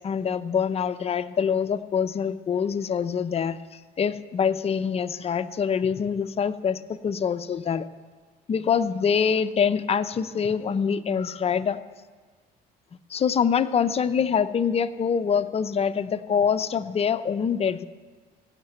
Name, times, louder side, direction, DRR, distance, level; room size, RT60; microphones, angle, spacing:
voice 1, 0.0-7.9 8.5-11.8 13.1-17.9, left 7 dB, 35° left, 11 dB, 0.6 m, -25 dB
15.5 x 6.6 x 9.1 m, 1.5 s
cardioid pair, 110°, 17 cm